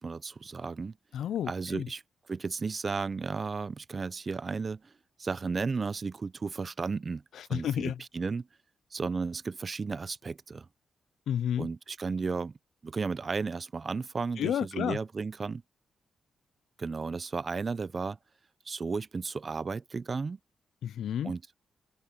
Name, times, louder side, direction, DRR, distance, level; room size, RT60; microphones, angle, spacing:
voice 1, 0.0-1.0 1.5-2.0 2.3-4.9 5.2-7.2 7.5-8.5 8.9-10.7 11.6-12.5 12.8-15.6 16.8-18.2 18.7-20.4 21.2-21.4, right 4 dB, 40° right, 0.6 m, -34 dB
voice 2, 1.1-1.9 7.4-8.0 11.3-11.7 14.4-15.0 20.8-21.3, left 10 dB, 80° left, 0.3 m, -31 dB
cardioid pair, 75°, 0 cm